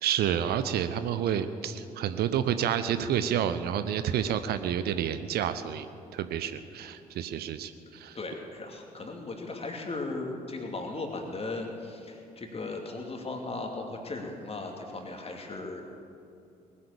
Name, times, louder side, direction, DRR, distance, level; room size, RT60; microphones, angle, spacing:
voice 1, 0.0-5.9 6.1-8.2, right 9 dB, 55° right, 11 dB, 0.7 m, -29 dB
voice 2, 8.1-15.8, left 3 dB, 30° left, 3 dB, 2.6 m, -37 dB
19.5 x 9.5 x 7.0 m, 2.5 s
figure-of-eight pair, 45°, 19 cm